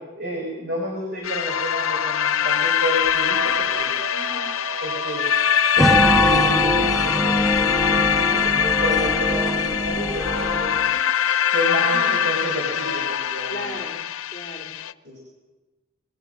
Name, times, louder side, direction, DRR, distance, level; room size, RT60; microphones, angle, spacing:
voice 1, 0.2-4.0 4.8-5.3 5.7-10.9 11.5-13.7 15.0-15.2, equal, 50° right, 0 dB, 5.1 m, -30 dB
sound 1, 1.2-14.9, left 8 dB, 85° left, 0.6 m, -23 dB
sound 2, 3.0-10.7, right 9 dB, 90° right, 1.5 m, -38 dB
voice 2, 4.1-4.5 9.0-9.6 11.2-11.5 11.8-12.2 13.5-14.0 14.3-14.7, equal, 15° left, -1 dB, 2.8 m, -37 dB
sound 3, 5.8-10.9, equal, ahead, 0.7 m, -23 dB
26.0 x 21.0 x 6.5 m, 1.2 s
head